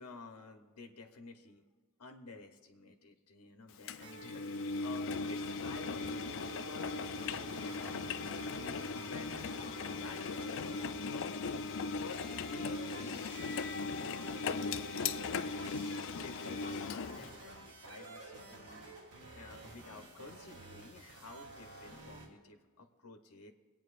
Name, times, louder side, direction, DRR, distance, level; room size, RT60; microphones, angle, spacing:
voice 1, 0.0-1.6 2.0-9.6 10.0-11.5 11.9-14.8 16.1-18.9 19.3-23.5, left 3 dB, 85° left, 5 dB, 0.9 m, -52 dB
Engine, 3.9-17.3, left 4 dB, 60° left, 0.4 m, -38 dB
sound 1, 4.0-22.3, right 1 dB, 90° right, 2.5 m, -50 dB
24.5 x 9.0 x 2.5 m, 1.5 s
head